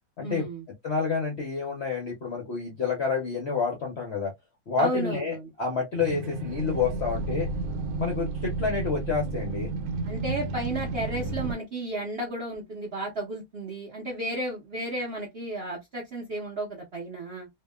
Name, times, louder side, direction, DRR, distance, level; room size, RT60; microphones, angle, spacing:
voice 1, 0.2-0.7 4.8-5.5 10.0-17.5, right 1 dB, 55° right, 0.7 m, -33 dB
voice 2, 0.8-4.3 4.7-7.5 8.0-9.7, left 5 dB, 60° left, 0.7 m, -28 dB
sound 1, 6.0-11.5, right 3 dB, 85° right, 1.3 m, -32 dB
2.7 x 2.3 x 2.2 m
omnidirectional pair, 1.9 m